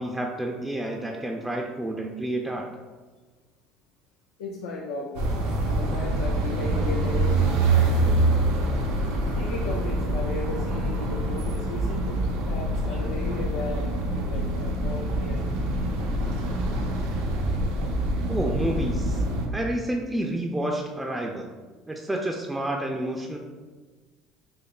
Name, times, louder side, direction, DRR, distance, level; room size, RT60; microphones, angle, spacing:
voice 1, 0.0-2.7 18.3-19.2 19.5-21.5 21.9-23.4, right 1 dB, 10° right, 0 dB, 0.3 m, -29 dB
voice 2, 4.4-5.3 5.7-8.7 9.4-15.6, left 3 dB, 85° left, -2 dB, 0.4 m, -36 dB
sound 1, 5.1-19.5, right 1 dB, 90° right, 0.5 m, -25 dB
5.2 x 2.0 x 2.3 m, 1.4 s
supercardioid pair, 95°, 0 cm